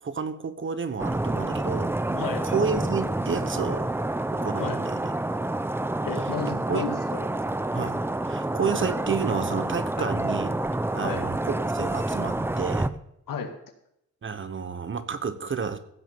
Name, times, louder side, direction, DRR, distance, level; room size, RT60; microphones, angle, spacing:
voice 1, 0.0-3.9 4.3-5.1 6.7-6.8 7.7-10.5 10.9-12.9 14.2-15.8, right 5 dB, 40° right, 12 dB, 1.0 m, -30 dB
sound 1, 1.0-12.9, right 2 dB, 5° right, 0.5 m, -28 dB
voice 2, 2.2-2.5 4.6-4.8 6.0-7.2 11.0-11.2 13.3-13.5, left 5 dB, 85° left, 5 dB, 1.9 m, -33 dB
15.5 x 6.4 x 7.1 m, 0.79 s
cardioid pair, 100°, 32 cm